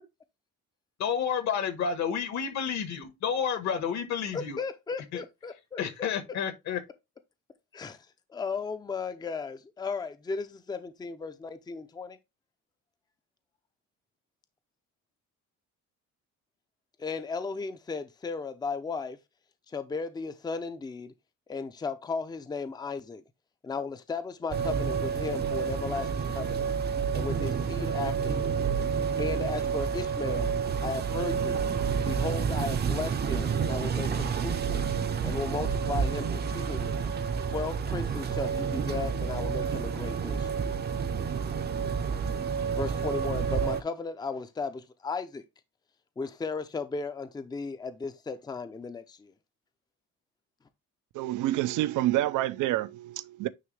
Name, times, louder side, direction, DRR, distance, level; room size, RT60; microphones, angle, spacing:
voice 1, 1.0-4.6 5.1-5.2 5.8-6.8, left 7 dB, 60° left, 1.4 m, -30 dB
voice 2, 4.3-6.1 7.7-8.0 8.3-12.2 17.0-19.2 19.7-21.1 21.5-23.2 23.6-26.7 27.1-28.6 29.2-30.6 30.8-31.7 32.0-34.8 35.2-37.0 37.4-40.6 42.7-45.4 46.2-49.3, left 4 dB, 15° left, 0.5 m, -35 dB
sound 1, 24.5-43.8, right 6 dB, 30° right, 0.6 m, -29 dB
voice 3, 51.1-53.5, right 15 dB, 70° right, 0.6 m, -28 dB
9.5 x 3.2 x 3.2 m
cardioid pair, 145°, 31 cm